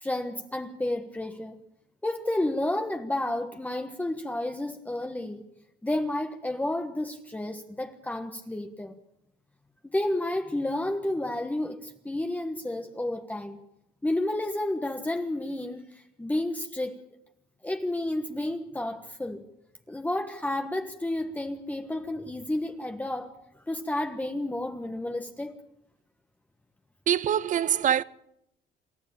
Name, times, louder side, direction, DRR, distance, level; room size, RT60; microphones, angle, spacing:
voice 1, 0.0-1.6 2.0-5.4 5.8-8.9 9.9-13.6 14.0-16.9 17.6-19.4 19.9-23.3 23.7-25.6, left 1 dB, 10° left, 1.5 m, -31 dB
voice 2, 27.1-28.0, right 10 dB, 50° right, 0.8 m, -24 dB
28.0 x 13.0 x 8.9 m
cardioid pair, 110°, 17 cm